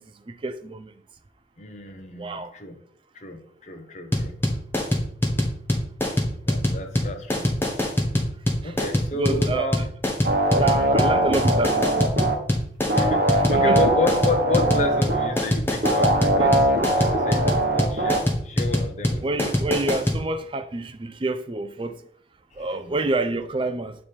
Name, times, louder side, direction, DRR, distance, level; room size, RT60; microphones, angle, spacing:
voice 1, 0.3-0.9 2.2-2.5 8.6-8.7 9.1-9.7 10.5-12.1 13.6-13.9 19.2-22.0 22.6-24.0, right 2 dB, 30° right, 0.4 m, -28 dB
voice 2, 1.6-2.8 3.1-4.3 6.4-7.5 8.6-9.9 12.9-16.7 17.0-19.5 22.6-23.0, left 2 dB, 40° left, 0.9 m, -30 dB
sound 1, 4.1-20.2, left 1 dB, 10° left, 1.0 m, -23 dB
sound 2, 10.2-12.3 12.9-15.3 15.8-18.2, right 1 dB, 50° right, 1.0 m, -21 dB
7.2 x 3.2 x 4.3 m
head